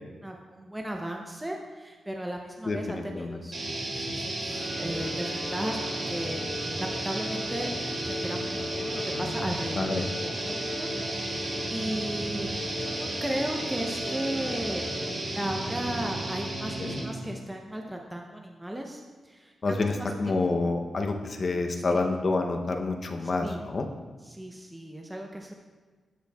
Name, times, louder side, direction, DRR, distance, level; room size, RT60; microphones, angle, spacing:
voice 1, 0.2-5.8 6.1-12.5 12.8-14.9 15.2-20.4 21.7-21.8 23.2-23.6 24.2-25.5, right 1 dB, 10° right, 1 dB, 0.6 m, -36 dB
voice 2, 2.7-3.4 9.8-10.0 16.8-17.0 19.6-23.9, left 3 dB, 50° left, 4 dB, 0.6 m, -28 dB
sound 1, 3.5-17.2, right 1 dB, 55° right, 1.4 m, -33 dB
Bowed string instrument, 4.5-15.5, left 2 dB, 25° left, 1.9 m, -39 dB
12.0 x 4.5 x 2.3 m, 1.4 s
cardioid pair, 80°, 0 cm